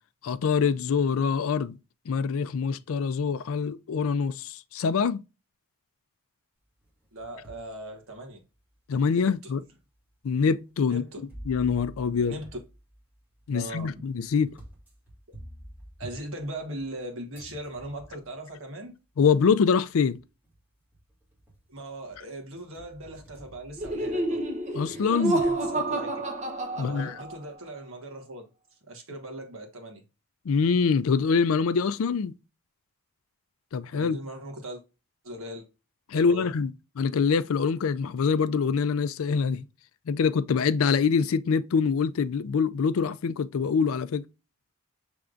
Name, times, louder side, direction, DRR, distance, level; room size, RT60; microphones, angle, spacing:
voice 1, 0.2-1.8 2.1-5.2 8.9-9.6 10.2-11.0 11.5-12.4 13.5-14.6 19.2-20.2 24.7-25.4 26.8-27.2 30.5-32.4 33.7-34.2 36.1-36.7 37.0-39.7 40.1-44.2, left 5 dB, 75° left, 0.4 m, -25 dB
sound 1, 6.8-7.7 8.3-8.4 9.3-9.4 11.3-17.0 17.3-18.4 19.5-19.6 20.1-20.6 20.9-21.7 22.1-24.5, right 1 dB, 5° right, 2.1 m, -48 dB
voice 2, 7.1-8.4 9.2-9.5 10.8-11.2 12.3-12.5 13.5-13.9 16.0-18.9 21.7-24.4 25.0-26.1 26.7-28.4 28.9-30.0 33.9-34.8 35.2-35.6 36.1-36.5, right 1 dB, 65° right, 1.4 m, -39 dB
Laughter, 23.8-27.5, right 2 dB, 30° right, 0.9 m, -29 dB
6.3 x 3.4 x 2.4 m
head